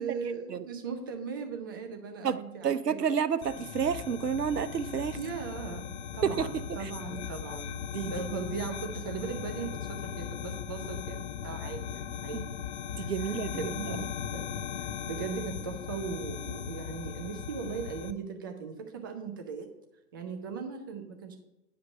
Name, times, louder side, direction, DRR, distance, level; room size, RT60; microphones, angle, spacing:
voice 1, 0.0-3.1 5.2-5.9 6.1-12.6 13.0-14.5 14.8-19.7 20.1-21.4, right 5 dB, 15° right, 4 dB, 0.4 m, -39 dB
voice 2, 2.2-5.2 6.2-6.6 7.9-8.1 12.3-12.4 12.9-13.9, right 7 dB, 85° right, 13 dB, 0.7 m, -30 dB
sound 1, 3.4-18.1, left 8 dB, 50° left, 0.5 m, -38 dB
9.5 x 5.1 x 5.3 m, 0.94 s
figure-of-eight pair, 115°, 46 cm